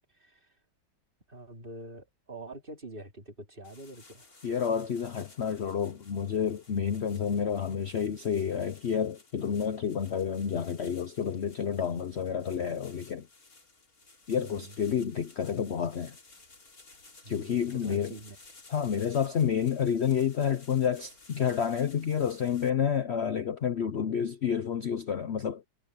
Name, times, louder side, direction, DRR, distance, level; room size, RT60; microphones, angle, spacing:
voice 1, 0.1-0.5 1.3-4.4 14.3-14.7 17.2-18.4, right 1 dB, 25° right, 3.1 m, -45 dB
sound 1, 3.6-22.7, left 3 dB, 45° left, 3.9 m, -56 dB
voice 2, 4.4-13.3 14.3-16.2 17.3-18.1 18.7-25.6, left 7 dB, 65° left, 0.6 m, -29 dB
omnidirectional pair, 2.2 m